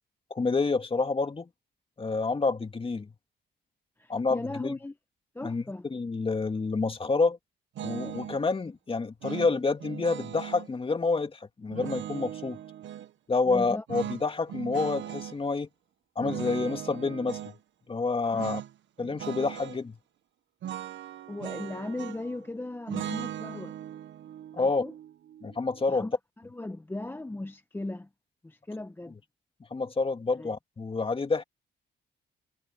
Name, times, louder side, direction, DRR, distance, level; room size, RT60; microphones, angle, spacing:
voice 1, 0.3-1.5 2.0-3.1 4.1-4.8 5.4-5.6 5.9-7.4 7.8-12.6 13.3-15.7 16.2-17.5 17.9-18.6 19.0-20.0 24.5-24.8 25.4-26.1 29.7-31.4, left 4 dB, 25° left, 2.2 m, -28 dB
voice 2, 4.0-4.9 5.3-5.9 13.5-13.8 18.3-18.6 21.3-23.7 24.6-24.9 25.9-26.2 26.4-28.1 28.4-29.1 30.4-30.5, left 2 dB, 10° left, 0.9 m, -37 dB
sound 1, 7.8-8.4 9.2-10.7 11.7-13.1 13.9-15.4 16.2-17.6 18.4-18.7 19.0-19.8 20.6-22.4 22.9-26.0, right 11 dB, 70° right, 1.1 m, -39 dB
cardioid pair, 90°, 20 cm